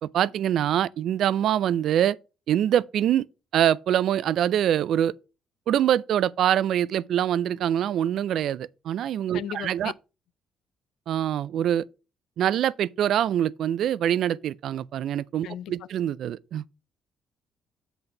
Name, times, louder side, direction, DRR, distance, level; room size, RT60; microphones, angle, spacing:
voice 1, 0.0-2.2 2.5-3.3 3.5-5.1 5.7-9.9 11.1-11.8 12.4-16.6, right 10 dB, 60° right, 0.3 m, -24 dB
voice 2, 9.3-9.9 15.4-15.7, left 10 dB, 70° left, 0.4 m, -35 dB
7.7 x 4.0 x 5.8 m
cardioid pair, 140°, 0 cm